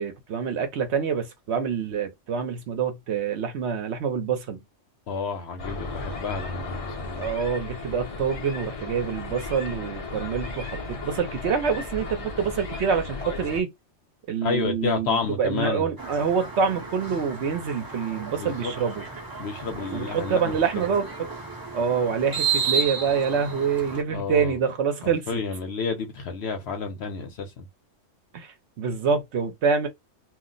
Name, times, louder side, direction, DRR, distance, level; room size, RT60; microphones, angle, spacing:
voice 1, 0.0-4.6 7.2-13.7 14.3-19.0 19.9-21.1 21.7-25.4 28.3-29.9, right 6 dB, 65° right, 0.9 m, -26 dB
voice 2, 5.1-7.3 14.4-15.9 18.4-18.7 19.4-20.8 24.1-24.6 25.0-27.7, left 5 dB, 60° left, 0.9 m, -30 dB
sound 1, 5.6-13.6, left 3 dB, 35° left, 0.6 m, -35 dB
sound 2, 16.0-24.0, right 5 dB, 25° right, 0.6 m, -32 dB
2.5 x 2.0 x 3.8 m
omnidirectional pair, 1.3 m